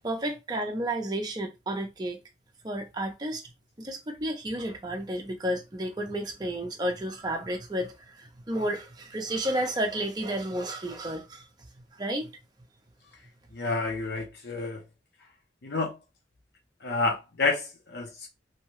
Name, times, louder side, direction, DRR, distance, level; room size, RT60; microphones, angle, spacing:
voice 1, 0.0-2.2 2.6-3.4 3.8-11.5 12.0-12.3, right 1 dB, 20° right, 0.6 m, -31 dB
voice 2, 13.5-14.8 15.6-16.0 16.8-18.3, left 3 dB, 65° left, 0.7 m, -29 dB
2.8 x 2.2 x 3.0 m
head